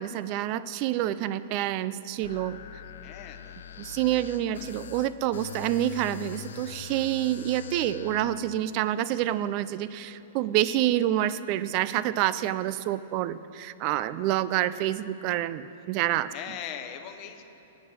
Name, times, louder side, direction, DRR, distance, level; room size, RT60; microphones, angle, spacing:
voice 1, 0.0-2.6 3.8-16.3, right 13 dB, 30° right, 16 dB, 0.3 m, -28 dB
sound 1, 2.2-8.4, left 8 dB, 85° left, 0.5 m, -43 dB
voice 2, 3.0-3.9 4.5-4.6 16.3-17.4, left 9 dB, 25° left, 6 dB, 0.7 m, -40 dB
18.5 x 8.2 x 6.3 m, 2.9 s
supercardioid pair, 175°, 0 cm